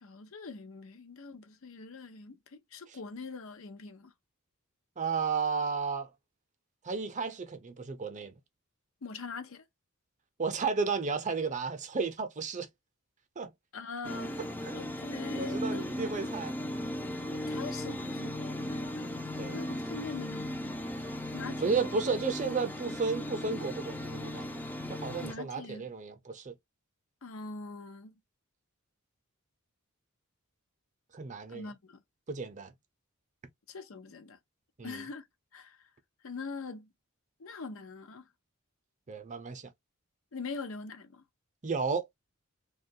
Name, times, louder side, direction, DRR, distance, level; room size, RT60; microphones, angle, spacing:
voice 1, 0.0-4.1 9.0-9.7 13.7-14.4 14.7-15.9 17.3-19.2 19.5-20.9 21.3-21.7 25.2-25.9 27.2-28.1 31.5-32.0 33.7-34.4 34.8-35.2 35.5-35.8 36.2-36.9 37.4-38.3 40.3-41.2, left 4 dB, 65° left, 0.6 m, -43 dB
voice 2, 5.0-6.1 6.8-8.4 10.4-12.7 13.4-13.5 14.6-14.8 15.4-16.6 19.4-19.6 21.6-24.6 24.9-26.6 31.1-31.7 32.3-32.7 34.8-35.1 39.1-39.7 41.6-42.0, right 5 dB, 35° right, 0.6 m, -33 dB
sound 1, 14.0-25.3, left 1 dB, 10° left, 0.4 m, -37 dB
2.9 x 2.3 x 2.8 m
head